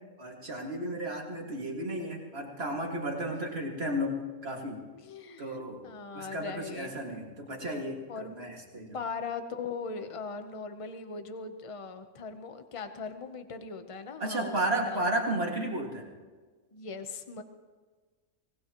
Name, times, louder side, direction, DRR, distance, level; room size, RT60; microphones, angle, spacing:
voice 1, 0.2-4.8 5.4-5.8 6.1-9.0 14.2-16.1, right 1 dB, 45° right, 0 dB, 2.4 m, -33 dB
voice 2, 4.9-7.3 8.1-8.3 8.9-15.1 16.7-17.4, left 4 dB, 25° left, 7 dB, 0.8 m, -40 dB
25.0 x 18.5 x 3.1 m, 1.4 s
omnidirectional pair, 1.5 m